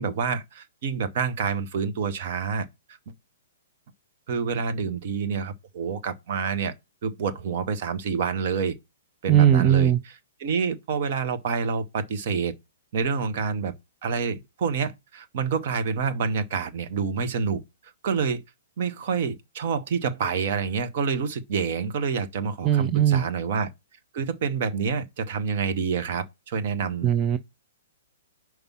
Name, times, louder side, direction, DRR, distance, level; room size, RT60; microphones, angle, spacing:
voice 1, 0.0-2.7 4.3-6.7 7.0-8.8 9.2-10.1 10.4-12.5 12.9-13.7 14.0-17.6 18.0-18.4 18.8-23.7 24.1-27.2, right 5 dB, 45° right, 0.9 m, -27 dB
voice 2, 9.3-10.0 22.6-23.2 27.0-27.4, right 10 dB, 25° right, 0.4 m, -19 dB
5.3 x 4.6 x 5.9 m
figure-of-eight pair, 115°, 0 cm